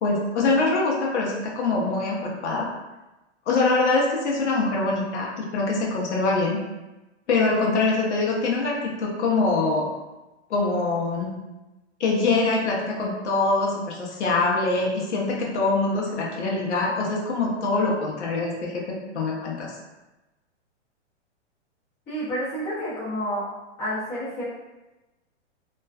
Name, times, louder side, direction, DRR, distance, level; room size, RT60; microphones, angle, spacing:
voice 1, 0.0-2.7 3.5-6.6 7.3-9.9 10.5-11.3 12.0-19.7, left 3 dB, 75° left, -3 dB, 0.8 m, -24 dB
voice 2, 22.1-23.5 23.8-24.4, equal, 10° left, -14 dB, 0.6 m, -29 dB
2.4 x 2.2 x 2.3 m, 1.0 s
hypercardioid pair, 170°, 36 cm